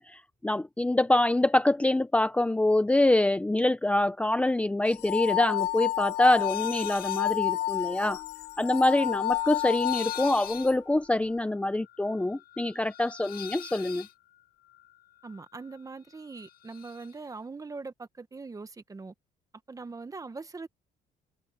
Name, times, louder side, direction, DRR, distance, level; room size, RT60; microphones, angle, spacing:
voice 1, 0.0-8.2 8.6-14.1, left 1 dB, 5° left, 0.9 m, -25 dB
sound 1, 4.9-10.7, left 16 dB, 85° left, 1.1 m, -30 dB
sound 2, 6.4-7.3 7.6-15.8 16.1-17.1, left 11 dB, 65° left, 1.7 m, -45 dB
voice 2, 15.2-19.1 19.7-20.7, right 4 dB, 20° right, 1.4 m, -41 dB
cardioid pair, 110°, 17 cm